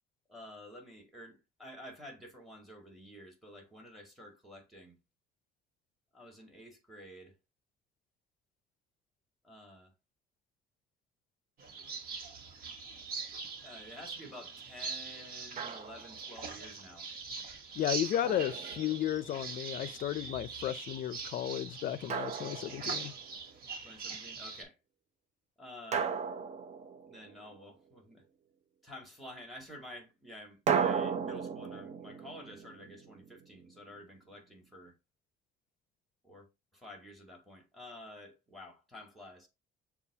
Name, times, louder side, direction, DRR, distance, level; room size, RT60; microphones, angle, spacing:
voice 1, 0.3-5.0 6.1-7.3 9.4-9.9 13.6-17.1 17.4-17.5 23.8-24.8 25.6-26.2 27.1-28.2 28.8-35.0 36.2-36.5 36.7-39.5, left 1 dB, ahead, 2.0 m, -50 dB
sound 1, 11.6-24.6, right 5 dB, 60° right, 1.2 m, -42 dB
Drum, 15.6-16.2 18.2-19.3 22.1-23.3 25.9-27.6 30.7-33.6, right 6 dB, 40° right, 0.7 m, -35 dB
voice 2, 17.8-23.1, left 11 dB, 55° left, 0.5 m, -34 dB
7.0 x 2.4 x 2.7 m
cardioid pair, 110°, 17 cm